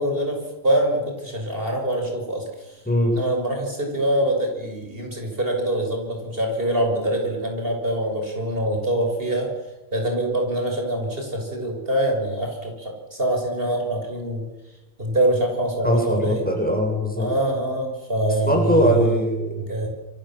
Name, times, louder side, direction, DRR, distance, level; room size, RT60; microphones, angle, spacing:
voice 1, 0.0-2.8 3.1-9.5 9.9-14.5 15.0-16.4 17.2-19.2 19.6-19.9, right 1 dB, 60° right, 2 dB, 6.7 m, -24 dB
voice 2, 15.8-17.3 18.4-19.5, equal, 10° left, 1 dB, 7.7 m, -21 dB
28.5 x 25.0 x 7.6 m, 1.0 s
omnidirectional pair, 1.1 m